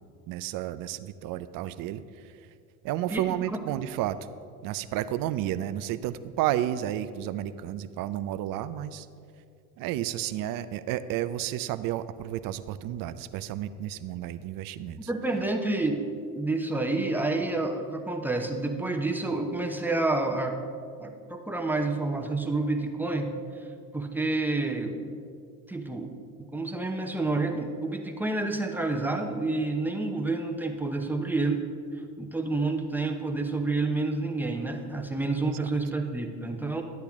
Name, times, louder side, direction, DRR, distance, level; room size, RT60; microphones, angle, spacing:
voice 1, 0.3-2.0 2.8-4.2 4.6-9.1 9.8-15.1, right 12 dB, 50° right, 13 dB, 0.5 m, -31 dB
voice 2, 3.1-3.6 15.1-16.0 16.3-20.6 21.0-23.3 23.9-25.0 25.7-26.1 26.5-31.7 32.2-36.8, right 2 dB, 5° right, 2 dB, 0.8 m, -29 dB
12.0 x 8.3 x 3.6 m, 2.3 s
supercardioid pair, 95°, 46 cm